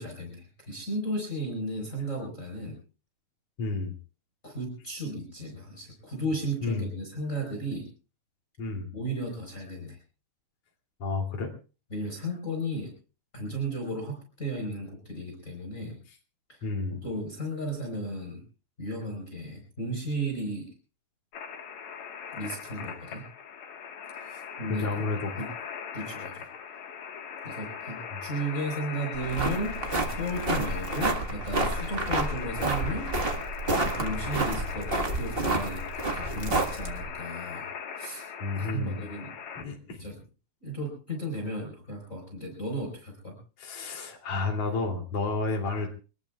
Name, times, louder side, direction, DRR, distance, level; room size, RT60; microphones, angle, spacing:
voice 1, 0.0-2.8 4.4-7.9 8.9-10.0 11.9-12.9 13.3-16.0 16.5-18.4 18.8-20.7 22.3-23.2 24.6-25.5 25.9-26.5 27.4-37.7 37.9-38.3 38.5-39.3 40.0-40.2 40.6-43.4, right 1 dB, 25° left, 0 dB, 4.7 m, -35 dB
voice 2, 3.6-3.9 6.6-6.9 8.6-8.9 11.0-11.5 16.6-17.0 24.2-24.4 24.7-25.3 38.4-39.0 39.6-40.0 43.6-45.9, left 3 dB, 50° left, 0 dB, 3.8 m, -31 dB
sound 1, 21.3-39.6, left 7 dB, 65° left, 2.7 m, -40 dB
sound 2, 29.1-37.1, right 2 dB, 30° right, 1.0 m, -29 dB
25.5 x 19.5 x 2.4 m, 0.36 s
omnidirectional pair, 3.5 m